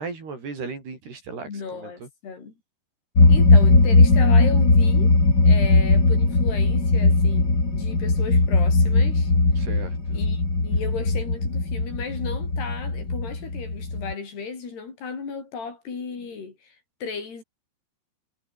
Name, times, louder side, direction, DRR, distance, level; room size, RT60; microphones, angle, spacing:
voice 1, 0.0-2.1 9.6-10.2, right 4 dB, 70° right, 9.4 m, -36 dB
voice 2, 1.4-2.5 3.3-5.2 5.4-9.3 10.1-17.4, left 5 dB, 75° left, 8.0 m, -35 dB
sound 1, 3.2-14.1, left 3 dB, 25° left, 4.8 m, -19 dB
omnidirectional pair, 4.8 m